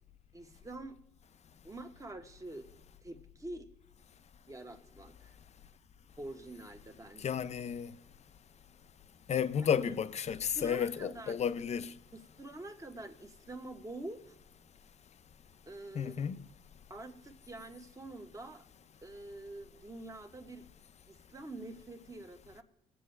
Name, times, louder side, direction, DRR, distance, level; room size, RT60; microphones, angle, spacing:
voice 1, 0.3-1.0 1.6-2.7 3.0-3.7 4.5-5.3 6.2-7.2 9.6-9.9 10.3-11.4 12.1-14.3 15.7-16.2 16.9-18.7 19.0-20.6 21.1-22.6, right 2 dB, 20° right, 1.4 m, -46 dB
voice 2, 7.2-7.9 9.3-11.9 15.9-16.4, left 7 dB, 40° left, 0.6 m, -32 dB
21.0 x 7.7 x 3.3 m
supercardioid pair, 75°, 17 cm